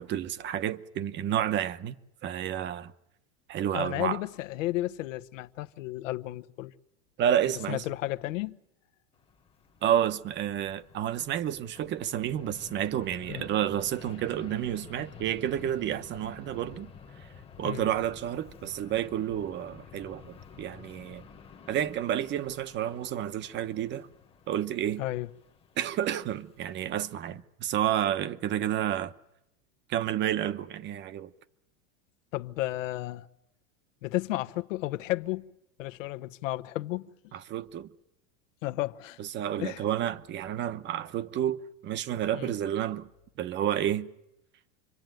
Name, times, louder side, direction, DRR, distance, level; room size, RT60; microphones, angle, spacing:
voice 1, 0.0-2.0 2.2-2.9 3.5-4.2 7.2-7.8 9.8-16.9 17.6-21.2 21.7-24.1 24.5-25.0 25.8-29.1 29.9-31.3 37.3-37.9 39.2-43.1 43.4-44.1, right 11 dB, 30° right, 1.0 m, -30 dB
voice 2, 3.7-6.7 7.5-8.6 13.3-13.5 17.6-17.9 25.0-25.3 32.3-33.3 34.0-35.5 35.8-37.1 38.6-39.2 39.6-39.8 42.3-42.5, left 17 dB, 75° left, 1.1 m, -33 dB
Fixed-wing aircraft airplane, 9.1-27.0, left 6 dB, 15° left, 1.3 m, -51 dB
27.0 x 23.5 x 9.2 m
supercardioid pair, 145°, 39 cm